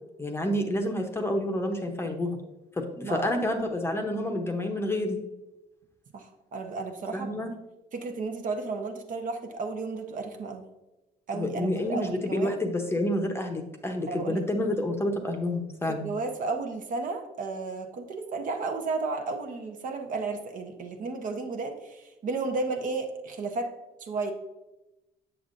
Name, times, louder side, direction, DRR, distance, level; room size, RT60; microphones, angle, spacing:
voice 1, 0.2-2.4 2.8-5.2 7.1-7.5 11.3-16.1, left 1 dB, 15° left, 3 dB, 0.8 m, -29 dB
voice 2, 3.0-3.4 6.1-6.3 6.5-7.3 7.9-10.6 11.3-12.6 14.1-14.4 15.9-23.7 24.0-24.3, right 3 dB, 50° right, 4 dB, 0.9 m, -33 dB
7.1 x 7.0 x 2.6 m, 0.99 s
cardioid pair, 110°, 17 cm